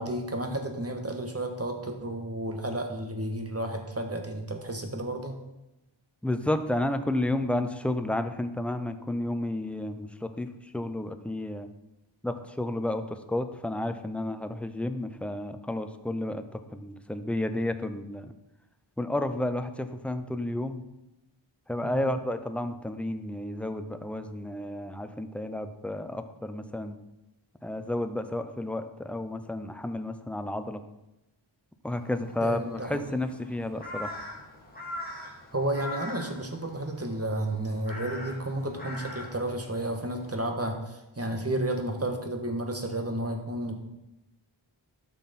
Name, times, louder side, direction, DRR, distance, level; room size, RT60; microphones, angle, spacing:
voice 1, 0.0-5.3 21.8-22.1 32.4-33.1 35.5-43.7, right 1 dB, 30° right, 4 dB, 1.4 m, -32 dB
voice 2, 6.2-10.5 10.7-11.7 12.2-18.3 19.0-20.8 21.7-27.0 27.6-30.8 31.8-34.2, left 1 dB, 5° left, 9 dB, 0.7 m, -31 dB
Crow, 31.9-40.3, left 1 dB, 20° left, 2.3 m, -43 dB
12.0 x 6.1 x 4.2 m, 0.95 s
wide cardioid pair, 65°, 48 cm